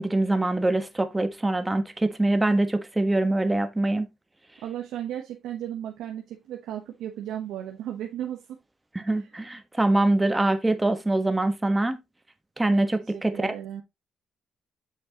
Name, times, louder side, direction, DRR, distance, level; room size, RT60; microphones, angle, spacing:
voice 1, 0.0-4.1 8.9-12.0 12.6-13.5, right 2 dB, 15° right, 1.3 m, -24 dB
voice 2, 4.6-8.6 9.1-9.4 12.7-12.8 13.1-13.8, right 11 dB, 90° right, 1.1 m, -35 dB
8.1 x 6.2 x 2.9 m
cardioid pair, 90°, 0 cm